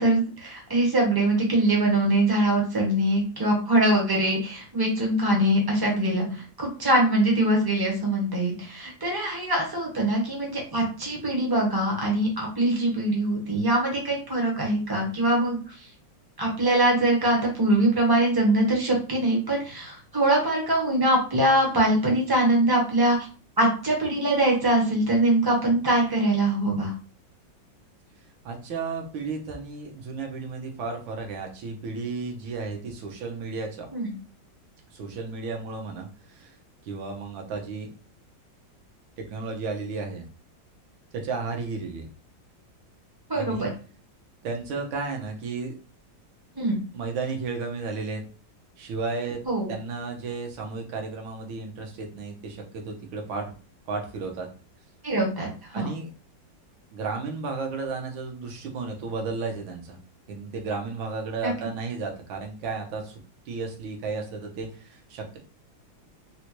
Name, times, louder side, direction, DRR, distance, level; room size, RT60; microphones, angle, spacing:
voice 1, 0.0-15.6 16.4-23.2 23.6-26.9 33.9-34.1 43.3-43.7 46.6-46.8 49.4-49.7 55.0-55.5 55.7-55.9 61.4-61.5, right 1 dB, 35° right, -1 dB, 0.3 m, -23 dB
voice 2, 28.4-33.9 34.9-36.5 36.8-37.9 39.3-40.2 41.1-42.1 43.3-43.7 44.4-45.7 46.9-48.2 48.8-49.4 49.7-53.5 53.9-54.5 55.7-56.1 56.9-60.0 60.3-63.1 63.5-65.4, right 4 dB, 85° right, 2 dB, 1.6 m, -33 dB
4.3 x 2.1 x 2.9 m, 0.37 s
omnidirectional pair, 2.1 m